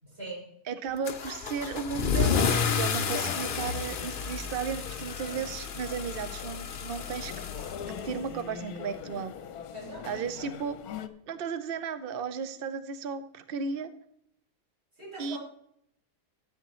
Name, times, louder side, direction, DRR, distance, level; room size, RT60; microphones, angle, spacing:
voice 1, 0.0-0.5 9.7-10.1 10.4-10.5 15.0-15.4, right 1 dB, 35° right, -4 dB, 4.8 m, -41 dB
voice 2, 0.7-7.3 8.0-9.3 10.0-10.8 11.3-13.9 15.2-15.4, right 6 dB, 65° right, 11 dB, 0.5 m, -34 dB
Car / Engine starting / Accelerating revving vroom, 1.0-8.4, left 6 dB, 50° left, 0.6 m, -31 dB
sound 1, 3.1-11.1, left 7 dB, 70° left, 1.2 m, -42 dB
14.0 x 8.2 x 3.1 m, 0.71 s
omnidirectional pair, 1.8 m